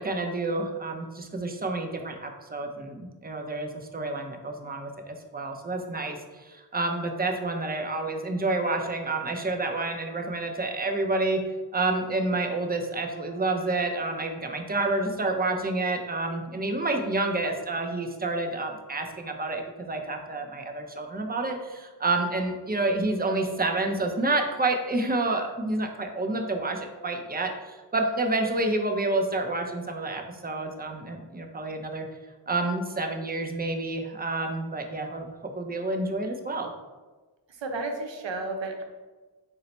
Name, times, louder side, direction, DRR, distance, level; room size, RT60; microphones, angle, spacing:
voice 1, 0.0-11.4 11.7-32.1 32.5-36.7, right 2 dB, 20° right, 4 dB, 0.5 m, -29 dB
voice 2, 37.5-38.8, right 2 dB, 80° right, 3 dB, 0.7 m, -32 dB
3.9 x 2.0 x 4.2 m, 1.3 s
cardioid pair, 55°, 44 cm